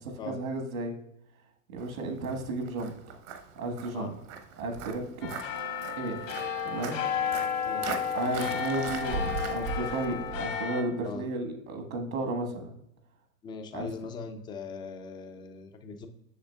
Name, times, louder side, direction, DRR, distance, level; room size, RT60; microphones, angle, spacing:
voice 1, 0.0-0.9 1.7-3.2 3.5-4.1 4.6-5.3 6.0-6.2 6.6-7.0 8.1-12.7 13.7-13.9, right 2 dB, 70° right, 4 dB, 1.6 m, -33 dB
Walk footsteps, 1.8-10.4, right 5 dB, 55° right, 1.0 m, -40 dB
sound 1, 5.2-10.8, left 7 dB, 65° left, 1.2 m, -32 dB
voice 2, 7.6-8.0 11.0-11.3 13.4-16.1, left 5 dB, 10° left, 7 dB, 0.3 m, -40 dB
7.9 x 6.2 x 2.3 m, 0.80 s
hypercardioid pair, 100°, 42 cm